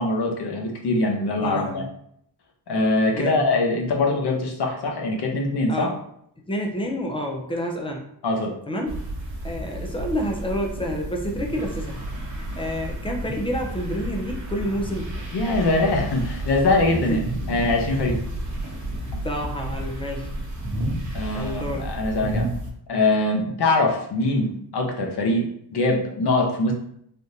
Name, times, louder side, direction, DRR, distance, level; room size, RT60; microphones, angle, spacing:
voice 1, 0.0-1.8 2.7-5.9 8.2-8.5 15.3-17.2 17.5-18.2 21.1-22.5 22.9-26.7, left 2 dB, 60° left, 1 dB, 0.7 m, -23 dB
voice 2, 1.4-1.8 3.1-3.4 5.7-6.0 6.5-8.1 8.7-8.9 9.4-12.0 12.3-15.1 17.0-17.2 17.9-18.0 19.2-20.3 21.3-21.9, equal, 15° left, 1 dB, 0.3 m, -29 dB
sound 1, 8.9-22.7, right 1 dB, 40° right, 0.9 m, -31 dB
3.5 x 2.5 x 2.7 m, 0.70 s
wide cardioid pair, 155°, 45 cm